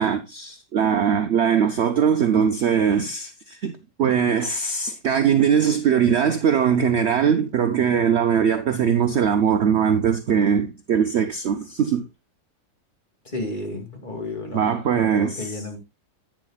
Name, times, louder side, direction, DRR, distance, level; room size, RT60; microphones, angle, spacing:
voice 1, 0.0-12.1 14.5-15.6, right 7 dB, 70° right, 0.6 m, -21 dB
voice 2, 13.2-15.8, left 2 dB, 25° left, 2.3 m, -32 dB
10.5 x 8.8 x 2.3 m
omnidirectional pair, 2.0 m